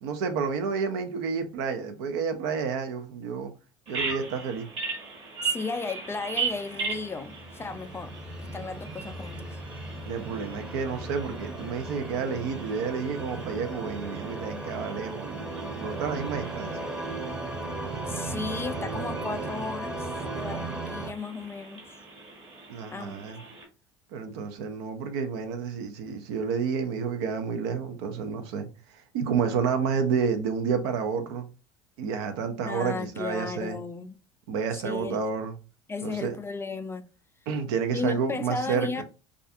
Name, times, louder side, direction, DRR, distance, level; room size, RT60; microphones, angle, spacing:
voice 1, 0.0-3.5 3.9-4.7 10.0-16.7 22.7-23.4 24.1-28.7 28.9-31.5 32.0-33.8 34.5-35.6 36.0-36.3 37.5-39.0, right 6 dB, 70° right, 0.5 m, -30 dB
Bird vocalization bird call bird song, 3.9-23.7, right 5 dB, 45° right, 1.1 m, -39 dB
voice 2, 5.4-8.1 8.4-9.6 18.1-22.0 22.9-23.2 32.6-34.1 34.7-35.2 35.9-37.1 37.9-39.0, left 4 dB, 20° left, 0.3 m, -35 dB
sound 1, 6.8-21.1, right 2 dB, 5° right, 0.7 m, -36 dB
2.4 x 2.3 x 2.5 m
hypercardioid pair, 75°, 14 cm